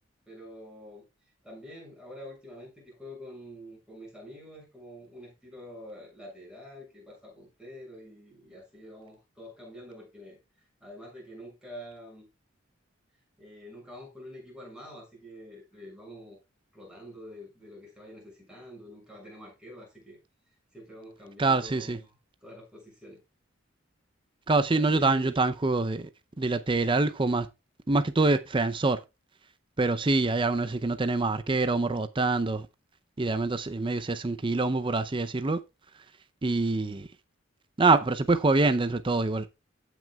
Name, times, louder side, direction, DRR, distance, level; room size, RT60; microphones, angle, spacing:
voice 1, 0.3-1.0 1.4-10.4 10.8-12.3 13.4-16.4 16.7-20.2 20.7-22.1 22.4-23.2 24.7-25.4, equal, 5° right, 6.4 m, -46 dB
voice 2, 21.4-22.0 24.5-26.1 26.4-27.5 27.9-29.0 29.8-32.7 33.2-35.6 36.4-37.1 37.8-39.5, right 3 dB, 25° right, 0.6 m, -25 dB
16.0 x 6.1 x 2.3 m
head